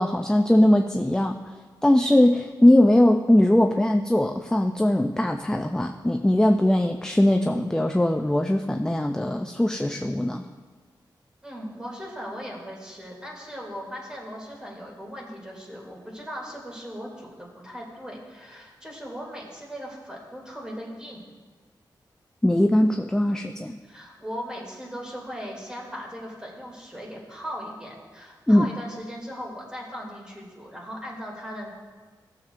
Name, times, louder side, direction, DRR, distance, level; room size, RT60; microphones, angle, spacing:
voice 1, 0.0-1.5 1.8-10.4 22.4-23.8 28.5-28.7, left 1 dB, 10° left, 4 dB, 0.4 m, -20 dB
voice 2, 11.4-21.2 23.8-31.7, equal, 10° right, -3 dB, 2.6 m, -38 dB
15.5 x 7.1 x 2.5 m, 1.4 s
wide cardioid pair, 85°, 8 cm